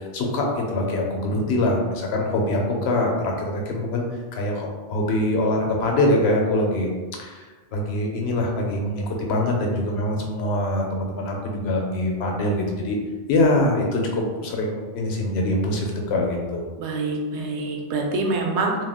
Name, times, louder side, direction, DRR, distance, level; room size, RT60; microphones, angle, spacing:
voice 1, 0.0-4.1 4.3-6.9 7.2-13.0 13.3-16.6, left 1 dB, 75° left, 1 dB, 0.8 m, -24 dB
voice 2, 16.8-18.8, right 3 dB, 85° right, 1 dB, 0.9 m, -25 dB
2.4 x 2.1 x 3.4 m, 1.3 s
omnidirectional pair, 1.1 m